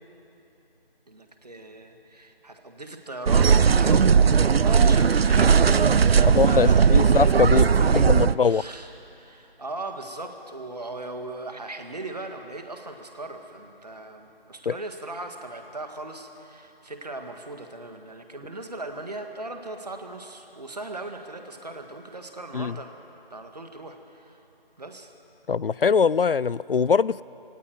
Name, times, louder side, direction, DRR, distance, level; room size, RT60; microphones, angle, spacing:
voice 1, 1.1-8.9 9.2-23.0 23.3-24.4 24.8-25.1, right 2 dB, 45° right, 5 dB, 1.8 m, -38 dB
sound 1, 3.3-8.3, right 6 dB, 80° right, 0.5 m, -18 dB
voice 2, 6.4-7.7 7.9-8.6 14.7-14.8 22.5-22.8 25.5-27.2, left 6 dB, 65° left, 21 dB, 0.5 m, -22 dB
20.0 x 17.5 x 9.3 m, 3.0 s
figure-of-eight pair, 170°, 30 cm